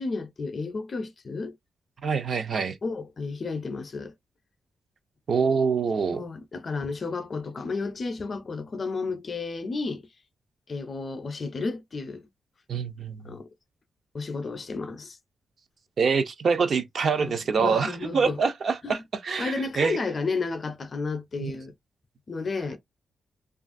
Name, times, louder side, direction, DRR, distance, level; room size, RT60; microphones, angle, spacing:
voice 1, 0.0-1.5 2.8-4.1 6.1-10.1 10.7-12.3 13.2-13.5 14.1-15.2 17.2-18.4 18.8-19.0 19.4-21.7 22.3-22.8, left 4 dB, 35° left, 0.5 m, -32 dB
voice 2, 2.0-2.8 5.3-6.2 12.7-13.2 16.0-20.0 21.4-21.5, right 5 dB, 50° right, 0.5 m, -25 dB
3.1 x 2.4 x 2.4 m
wide cardioid pair, 135°, 0 cm